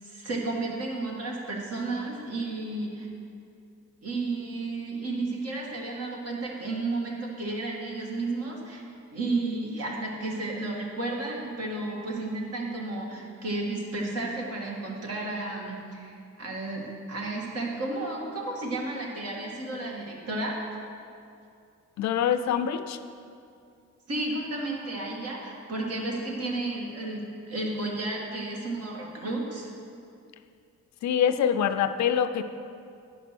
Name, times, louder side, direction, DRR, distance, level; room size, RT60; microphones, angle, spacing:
voice 1, 0.0-3.1 4.0-8.8 9.1-20.6 24.1-29.7, right 2 dB, 55° right, -2 dB, 2.2 m, -32 dB
voice 2, 22.0-23.0 31.0-32.4, left 8 dB, 65° left, 10 dB, 0.5 m, -25 dB
10.5 x 5.5 x 6.0 m, 2.4 s
cardioid pair, 90°, 30 cm